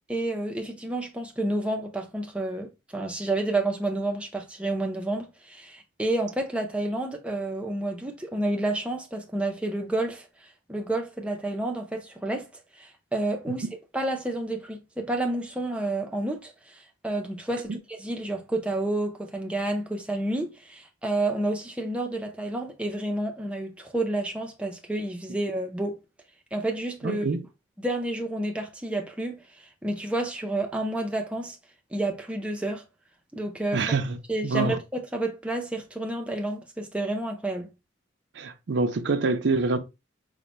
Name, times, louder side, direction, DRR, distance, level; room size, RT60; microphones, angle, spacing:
voice 1, 0.1-10.3 10.7-12.5 12.7-13.7 13.9-26.0 26.5-27.3 27.8-29.4 29.8-31.6 31.9-32.8 33.3-33.8 34.3-37.7, right 1 dB, 5° right, 0.5 m, -30 dB
voice 2, 27.0-27.4 33.7-34.2 34.4-34.8 38.4-39.8, right 3 dB, 60° right, 0.5 m, -25 dB
4.0 x 2.1 x 3.2 m
head